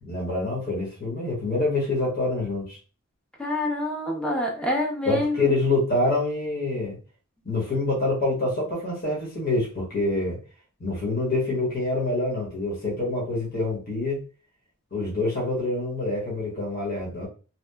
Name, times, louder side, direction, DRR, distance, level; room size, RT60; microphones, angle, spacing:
voice 1, 0.0-2.8 5.0-7.0 7.4-10.4 10.8-14.2 14.9-17.3, left 2 dB, 45° left, -4 dB, 1.1 m, -26 dB
voice 2, 3.4-5.5, left 1 dB, 5° left, -1 dB, 0.7 m, -27 dB
2.8 x 2.2 x 2.2 m, 0.35 s
head